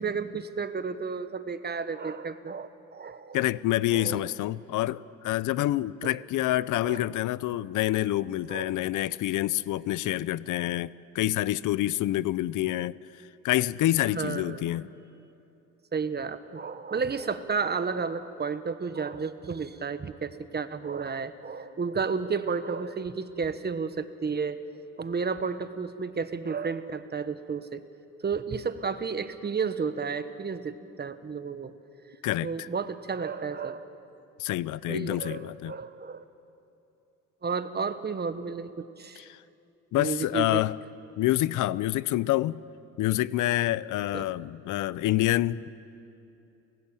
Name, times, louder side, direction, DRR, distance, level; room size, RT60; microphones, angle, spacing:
voice 1, 0.0-3.4 3.9-4.3 6.0-6.2 6.8-7.1 8.5-8.7 14.1-14.7 15.9-24.6 25.0-27.8 28.2-31.7 32.4-33.9 34.9-36.2 37.4-39.2 39.9-40.6 44.1-44.3, right 5 dB, 35° right, 1.3 m, -32 dB
voice 2, 3.3-13.0 13.4-14.9 32.2-32.7 34.4-35.7 39.2-39.4 39.9-40.8 41.2-42.6 43.0-45.7, left 15 dB, 80° left, 0.6 m, -27 dB
29.0 x 17.0 x 9.0 m
cardioid pair, 90°, 30 cm